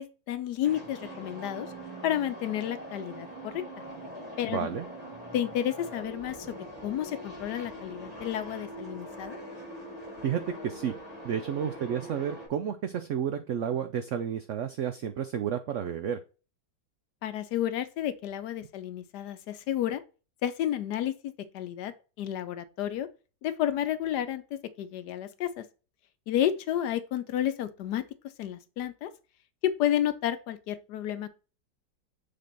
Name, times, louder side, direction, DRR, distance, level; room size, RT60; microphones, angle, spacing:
voice 1, 0.0-1.7 2.0-3.6 4.4-4.7 5.3-9.4 17.2-20.0 20.4-23.1 23.4-25.6 26.3-28.0 28.4-29.1 29.6-31.3, left 11 dB, 75° left, 1.2 m, -31 dB
sound 1, 0.6-12.5, right 1 dB, 55° right, 4.1 m, -42 dB
voice 2, 4.5-4.9 10.2-10.9 11.2-16.2, right 8 dB, 75° right, 0.6 m, -31 dB
6.7 x 3.5 x 3.9 m
omnidirectional pair, 1.9 m